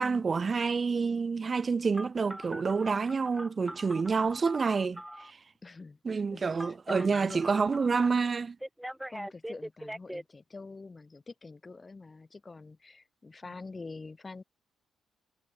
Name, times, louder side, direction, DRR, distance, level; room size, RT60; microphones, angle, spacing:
voice 1, 0.0-5.4 6.0-8.6, right 5 dB, 35° right, 0.4 m, -28 dB
Telephone, 1.9-5.3 6.6-8.1 8.6-10.2, equal, 5° right, 1.2 m, -42 dB
voice 2, 5.6-6.6 6.9-7.4 9.1-14.4, left 3 dB, 25° left, 1.8 m, -46 dB
figure-of-eight pair, 40°, 0 cm